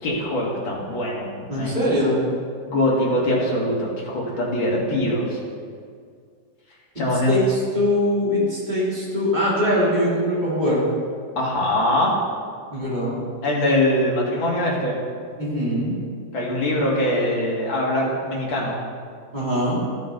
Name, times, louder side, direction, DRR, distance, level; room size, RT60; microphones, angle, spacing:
voice 1, 0.0-1.8 2.6-5.4 7.0-7.4 11.4-12.2 13.4-15.0 16.3-18.8, left 1 dB, 80° left, -4 dB, 2.7 m, -22 dB
voice 2, 1.5-2.2 6.9-10.8 12.7-13.2 15.4-15.9 19.3-19.8, left 1 dB, 20° right, -8 dB, 3.2 m, -22 dB
14.0 x 6.8 x 3.9 m, 2.1 s
omnidirectional pair, 2.1 m